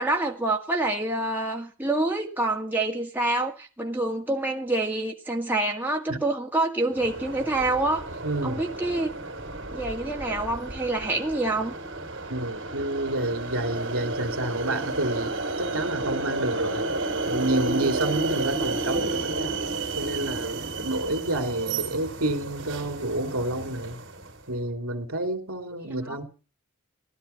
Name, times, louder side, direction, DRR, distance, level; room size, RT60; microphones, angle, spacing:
voice 1, 0.0-8.0 8.4-9.1 9.7-11.7 26.1-26.2, right 2 dB, 10° right, 0 dB, 1.9 m, -27 dB
sound 1, 6.9-24.4, right 3 dB, 60° right, 3.1 m, -32 dB
voice 2, 8.2-8.6 12.3-15.3 15.6-16.8 17.3-19.6 20.0-24.0 24.5-26.2, right 1 dB, 85° right, 7 dB, 3.0 m, -29 dB
16.5 x 12.0 x 5.8 m, 0.37 s
head